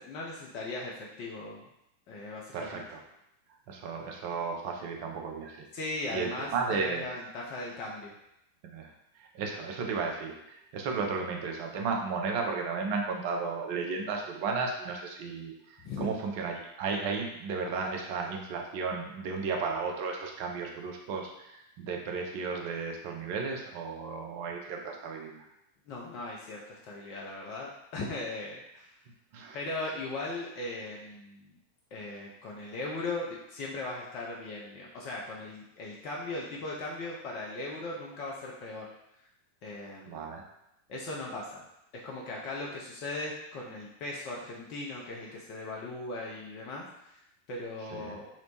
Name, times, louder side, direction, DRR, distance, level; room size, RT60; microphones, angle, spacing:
voice 1, 0.0-1.7 2.1-2.8 5.7-8.1 15.8-16.1 25.9-28.9 29.5-31.5 31.9-38.9 39.6-40.2 40.9-41.6 41.9-48.3, left 2 dB, 40° left, -3 dB, 0.4 m, -38 dB
voice 2, 2.5-3.0 3.7-5.7 6.1-7.0 8.6-8.9 9.2-25.5 29.3-29.6 40.1-40.4 47.9-48.2, right 4 dB, 45° right, 2 dB, 0.5 m, -34 dB
2.8 x 2.0 x 2.8 m, 0.83 s
figure-of-eight pair, 90°, 0 cm